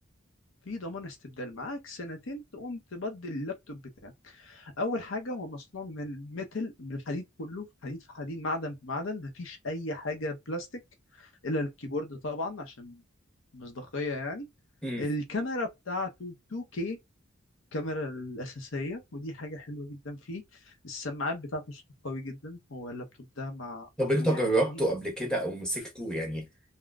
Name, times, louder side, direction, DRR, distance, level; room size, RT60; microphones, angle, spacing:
voice 1, 0.7-10.7 11.2-13.0 13.5-14.5 15.0-17.0 17.7-20.4 20.8-23.9 24.2-24.8, left 2 dB, 70° left, 0.8 m, -36 dB
voice 2, 24.0-26.5, right 1 dB, 5° left, 1.0 m, -28 dB
3.6 x 2.2 x 2.3 m
head